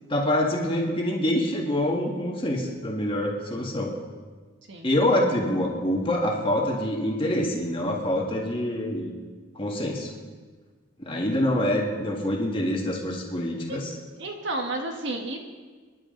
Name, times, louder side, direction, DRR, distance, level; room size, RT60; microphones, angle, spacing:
voice 1, 0.1-3.9 4.8-9.1 9.6-10.1 11.0-13.9, left 1 dB, 25° left, -1 dB, 1.9 m, -26 dB
voice 2, 14.2-15.4, right 2 dB, 55° right, 3 dB, 1.5 m, -31 dB
23.5 x 11.0 x 3.9 m, 1.4 s
head